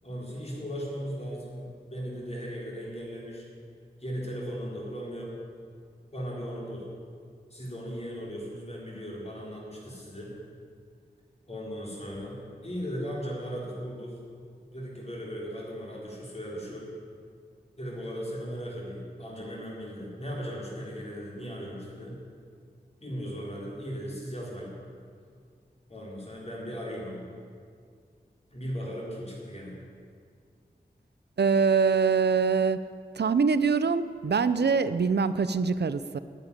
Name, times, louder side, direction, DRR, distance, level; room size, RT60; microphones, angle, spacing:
voice 1, 0.0-3.5 4.0-5.3 6.1-6.8 7.5-10.3 11.5-12.4 12.6-14.1 14.7-16.9 17.8-22.2 23.0-24.7 25.9-27.2 28.5-29.8, equal, 40° left, -4 dB, 4.1 m, -37 dB
voice 2, 31.4-32.8 33.1-36.2, right 5 dB, 75° right, 14 dB, 0.5 m, -24 dB
10.0 x 9.3 x 9.8 m, 2.2 s
wide cardioid pair, 80°, 17 cm